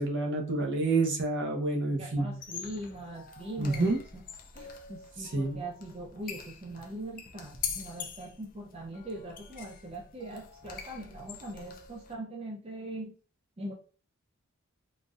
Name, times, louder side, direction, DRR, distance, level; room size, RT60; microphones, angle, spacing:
voice 1, 0.0-2.3 3.6-4.0 5.2-5.6, right 2 dB, 55° right, 2 dB, 0.8 m, -28 dB
voice 2, 1.9-4.2 4.5-13.1 13.6-13.7, right 1 dB, 25° right, 0 dB, 0.4 m, -41 dB
sound 1, 2.3-12.1, left 7 dB, 40° left, 0.4 m, -44 dB
3.8 x 2.5 x 2.4 m, 0.37 s
head